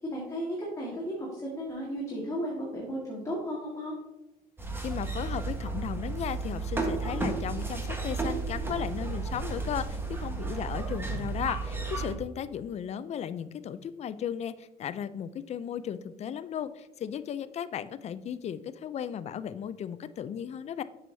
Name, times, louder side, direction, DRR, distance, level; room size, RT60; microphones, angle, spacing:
voice 1, 0.0-3.9 12.0-12.1, equal, 20° left, -5 dB, 1.8 m, -34 dB
sound 1, 4.6-12.1, right 3 dB, 15° right, 1.3 m, -33 dB
voice 2, 4.8-20.8, left 9 dB, 40° left, 14 dB, 0.4 m, -35 dB
7.4 x 6.3 x 2.7 m, 0.98 s
cardioid pair, 110°, 17 cm